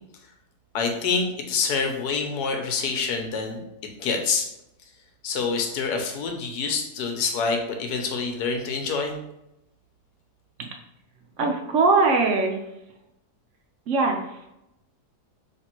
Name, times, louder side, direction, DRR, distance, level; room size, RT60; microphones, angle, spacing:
voice 1, 0.7-3.6 4.0-4.5 5.2-9.2, left 4 dB, 80° left, 4 dB, 1.3 m, -26 dB
voice 2, 11.4-12.6 13.9-14.5, right 3 dB, 65° right, 2 dB, 0.8 m, -21 dB
3.4 x 2.9 x 4.4 m, 0.86 s
omnidirectional pair, 1.7 m